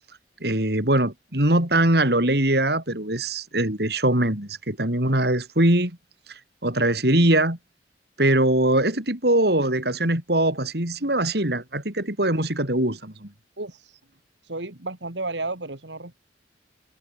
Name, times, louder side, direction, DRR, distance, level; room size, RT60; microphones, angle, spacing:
voice 1, 0.4-6.0 6.6-7.6 8.2-13.3, right 1 dB, 60° right, 4.6 m, -22 dB
voice 2, 13.6-14.0 14.4-16.2, right 2 dB, 75° right, 3.2 m, -33 dB
head